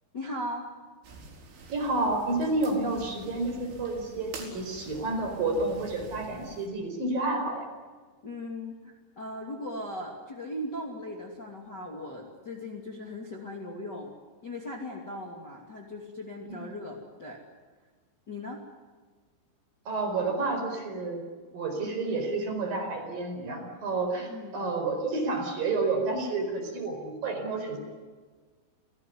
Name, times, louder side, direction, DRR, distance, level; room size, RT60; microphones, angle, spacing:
voice 1, 0.1-0.7 8.2-14.1 14.4-17.4 18.3-18.6 24.3-24.6, left 1 dB, 30° left, 0 dB, 2.5 m, -38 dB
sound 1, 1.0-6.7, right 4 dB, 85° right, 6.8 m, -47 dB
voice 2, 1.7-7.7 19.9-21.2 21.5-27.8, right 3 dB, 50° right, 3 dB, 6.0 m, -30 dB
28.5 x 17.5 x 9.6 m, 1.5 s
omnidirectional pair, 5.4 m